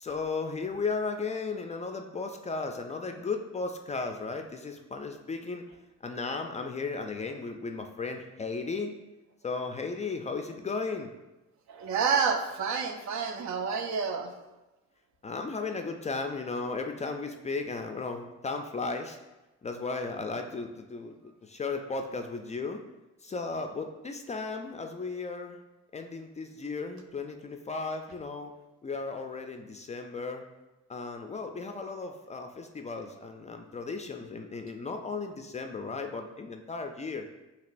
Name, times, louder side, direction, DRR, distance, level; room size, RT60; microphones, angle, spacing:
voice 1, 0.0-5.7 6.0-8.9 9.4-11.1 15.2-19.2 19.6-22.8 23.2-25.6 25.9-28.5 28.8-30.4 30.9-37.3, left 4 dB, 25° left, 5 dB, 0.3 m, -35 dB
voice 2, 11.7-14.3, right 6 dB, 70° right, 5 dB, 0.6 m, -29 dB
6.4 x 2.9 x 2.5 m, 1.0 s
cardioid pair, 90°, 30 cm